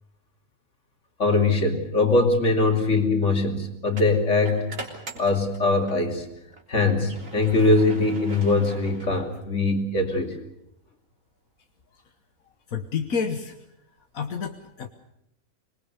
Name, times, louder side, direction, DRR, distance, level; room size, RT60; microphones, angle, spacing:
voice 1, 1.2-4.7 5.2-6.3 6.7-10.4, left 3 dB, 60° left, 4 dB, 3.3 m, -22 dB
sound 1, 1.8-2.0 3.9-6.0 6.5-9.7, right 2 dB, 75° right, 4.0 m, -42 dB
voice 2, 12.7-13.6 14.1-14.9, left 6 dB, 85° left, 6 dB, 1.7 m, -29 dB
25.5 x 21.5 x 6.8 m, 0.81 s
omnidirectional pair, 1.4 m